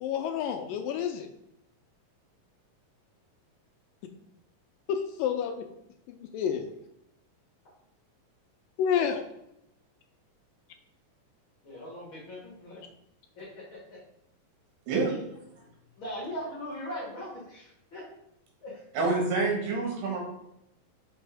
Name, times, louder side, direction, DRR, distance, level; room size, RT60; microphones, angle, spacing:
voice 1, 0.0-1.3 4.9-5.7 6.1-6.7 8.8-9.2, left 8 dB, 80° left, 6 dB, 2.1 m, -29 dB
voice 2, 11.6-12.8 13.4-14.0 16.0-18.1 18.6-19.2, left 1 dB, 50° left, -5 dB, 1.7 m, -40 dB
voice 3, 14.9-15.2 18.9-20.2, right 3 dB, 75° right, 0 dB, 3.2 m, -27 dB
6.3 x 4.8 x 3.4 m, 0.80 s
omnidirectional pair, 4.1 m